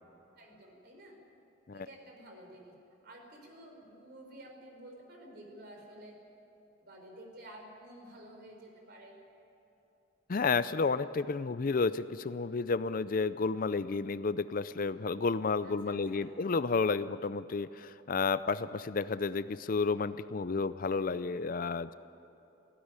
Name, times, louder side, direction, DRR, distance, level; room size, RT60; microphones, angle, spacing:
voice 1, 0.3-1.1 1.7-2.7 3.0-6.2 6.8-9.2 15.6-16.3, right 1 dB, 55° right, 1 dB, 4.6 m, -51 dB
voice 2, 10.3-21.9, left 4 dB, 45° left, 14 dB, 0.5 m, -31 dB
18.5 x 16.0 x 9.8 m, 2.9 s
head